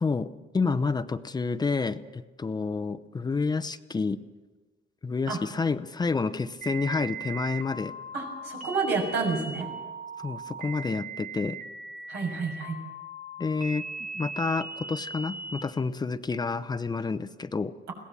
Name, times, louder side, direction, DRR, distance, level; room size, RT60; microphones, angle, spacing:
voice 1, 0.0-4.2 5.0-7.9 10.2-11.6 13.4-13.9 14.1-17.7, left 4 dB, 25° left, 11 dB, 0.8 m, -29 dB
sound 1, 6.6-15.6, right 3 dB, 50° right, 2.3 m, -39 dB
voice 2, 8.1-9.7 12.1-12.8, right 4 dB, 80° right, 1 dB, 6.5 m, -29 dB
21.5 x 17.0 x 7.4 m, 1.3 s
cardioid pair, 110°, 18 cm